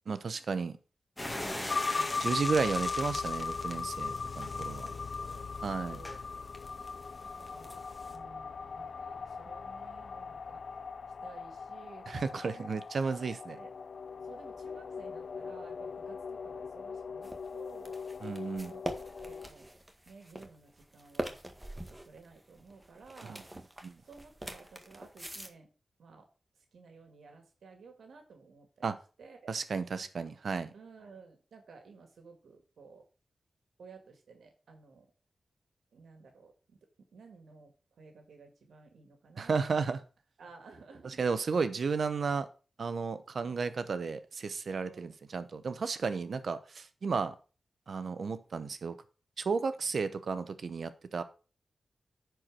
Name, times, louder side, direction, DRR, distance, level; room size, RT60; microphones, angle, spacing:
voice 1, 0.1-0.8 2.2-4.8 5.6-6.0 12.1-13.6 18.2-18.7 23.3-23.4 23.8-23.9 28.8-29.0 29.5-30.7 39.4-40.0 41.2-42.5 42.8-47.3 47.9-49.0 49.4-51.2, right 5 dB, 70° right, 12 dB, 0.9 m, -33 dB
sound 1, 1.2-8.2, left 1 dB, 20° left, 1.8 m, -42 dB
sound 2, 1.7-19.5, left 5 dB, 70° left, 0.4 m, -39 dB
voice 2, 1.9-2.3 4.5-6.2 7.4-10.6 11.2-12.1 12.5-13.7 14.2-18.0 18.4-19.7 20.1-21.4 21.8-23.5 24.0-25.7 26.0-26.3 26.6-28.9 29.2-29.6 30.7-33.1 33.8-35.1 35.9-36.8 37.1-40.0 40.4-41.3 44.8-45.2 49.8-50.0, right 4 dB, 90° right, 5 dB, 1.9 m, -55 dB
sound 3, 17.2-25.5, right 1 dB, 15° right, 1.7 m, -43 dB
9.8 x 4.7 x 6.1 m, 0.36 s
cardioid pair, 50°, 0 cm